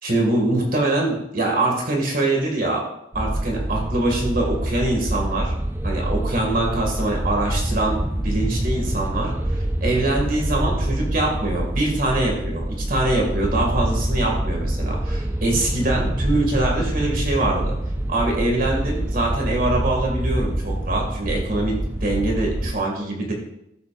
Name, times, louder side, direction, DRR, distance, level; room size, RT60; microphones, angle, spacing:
voice 1, 0.0-2.8 3.1-5.5 5.8-17.7 18.1-23.3, right 2 dB, 55° right, 0 dB, 2.3 m, -23 dB
sound 1, 3.1-22.7, right 1 dB, 15° right, 0.5 m, -26 dB
14.0 x 8.4 x 2.6 m, 0.81 s
head